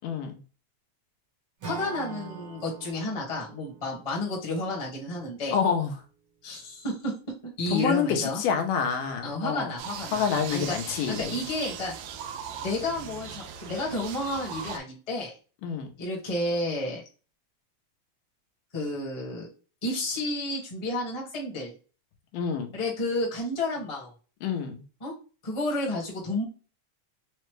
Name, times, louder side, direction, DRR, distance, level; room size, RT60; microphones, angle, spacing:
voice 1, 0.0-0.4 5.5-5.9 7.7-9.7 10.1-11.4 15.6-15.9 22.3-22.8 24.4-24.8, left 7 dB, 85° left, 2.4 m, -27 dB
voice 2, 1.6-5.6 6.4-7.1 7.4-8.4 9.2-11.9 12.6-15.3 16.0-17.0 18.7-19.5 19.8-21.7 22.7-24.1 25.0-25.1 25.4-26.4, left 1 dB, 25° left, 0.8 m, -31 dB
Acoustic guitar / Strum, 1.6-5.7, right 5 dB, 60° right, 1.5 m, -43 dB
sound 1, 9.8-14.8, right 7 dB, 90° right, 1.5 m, -39 dB
5.7 x 2.2 x 3.2 m
omnidirectional pair, 3.7 m